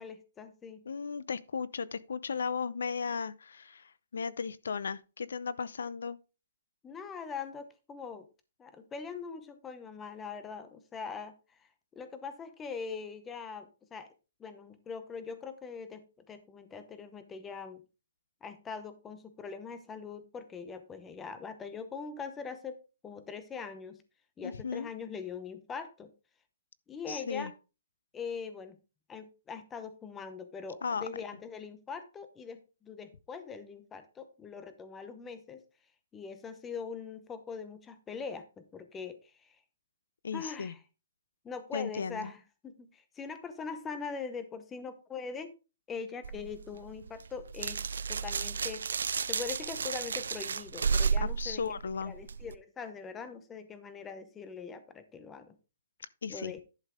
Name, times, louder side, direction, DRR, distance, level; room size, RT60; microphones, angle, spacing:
voice 1, 0.0-0.8 6.8-8.3 8.6-11.3 11.6-11.7 11.9-14.1 14.4-17.8 18.4-22.8 23.0-24.0 24.4-26.1 26.9-27.5 28.1-28.8 29.1-35.6 36.1-39.6 40.3-40.8 41.4-45.6 45.9-47.8 48.1-48.9 49.3-55.5 56.3-56.6, left 5 dB, 10° left, 0.7 m, -42 dB
voice 2, 0.9-6.2 24.4-24.9 27.1-27.5 30.8-31.1 40.2-40.7 41.7-42.3 51.2-52.1 56.2-56.5, left 5 dB, 85° left, 0.6 m, -36 dB
sound 1, 46.2-52.6, right 6 dB, 85° right, 0.4 m, -33 dB
11.0 x 5.5 x 3.7 m
hypercardioid pair, 170°, 0 cm